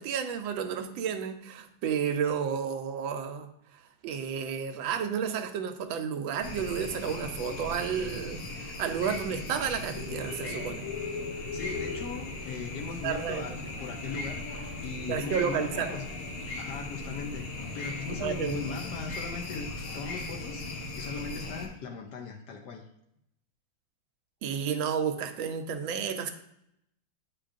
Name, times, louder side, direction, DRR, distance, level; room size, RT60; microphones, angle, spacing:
voice 1, 0.0-3.5 4.0-10.9 12.8-13.6 15.1-15.9 18.1-18.8 24.4-26.3, right 7 dB, 75° right, 7 dB, 1.3 m, -32 dB
sound 1, 6.4-21.7, left 2 dB, 90° left, 1.8 m, -38 dB
voice 2, 11.5-16.0 16.5-22.8, left 5 dB, 70° left, 3 dB, 1.0 m, -39 dB
8.3 x 5.1 x 2.5 m, 0.78 s
omnidirectional pair, 2.3 m